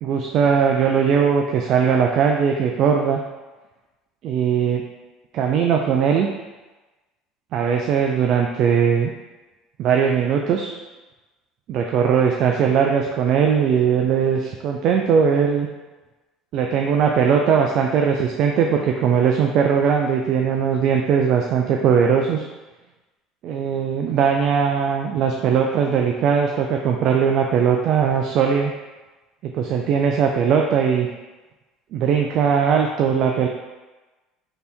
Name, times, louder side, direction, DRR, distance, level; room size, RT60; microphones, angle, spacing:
voice 1, 0.0-3.2 4.2-4.8 5.3-6.3 7.5-9.1 9.8-10.7 11.7-15.7 16.5-22.4 23.4-28.7 29.4-31.1 31.9-33.5, right 7 dB, 60° right, 2 dB, 0.4 m, -19 dB
3.3 x 2.8 x 4.2 m, 1.2 s
supercardioid pair, 85°, 0 cm